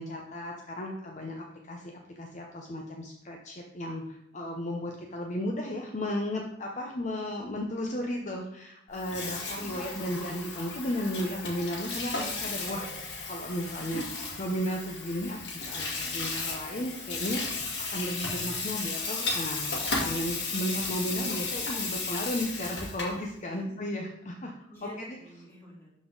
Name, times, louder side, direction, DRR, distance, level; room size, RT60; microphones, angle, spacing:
voice 1, 0.0-14.0 14.4-24.5, equal, 45° left, 1 dB, 0.8 m, -34 dB
Water tap faucet / Sink (filling or washing), 8.9-23.2, left 3 dB, 80° left, 1.9 m, -34 dB
voice 2, 9.6-10.0 13.8-14.1 23.5-23.8 24.7-25.9, equal, 15° left, -7 dB, 3.2 m, -45 dB
12.0 x 4.2 x 3.9 m, 0.80 s
head